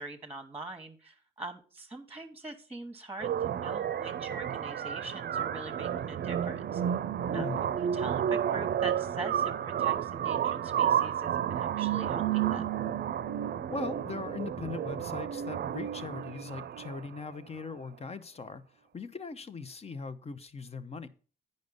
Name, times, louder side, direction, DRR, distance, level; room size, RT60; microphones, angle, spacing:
voice 1, 0.0-6.8 7.3-12.7, right 2 dB, 10° right, 7 dB, 1.2 m, -43 dB
sound 1, 3.2-17.2, right 9 dB, 55° right, 0.6 m, -31 dB
voice 2, 7.3-7.7 13.7-18.6 18.9-21.1, left 4 dB, 30° left, 12 dB, 0.8 m, -40 dB
9.4 x 5.4 x 5.2 m, 0.39 s
cardioid pair, 90°, 20 cm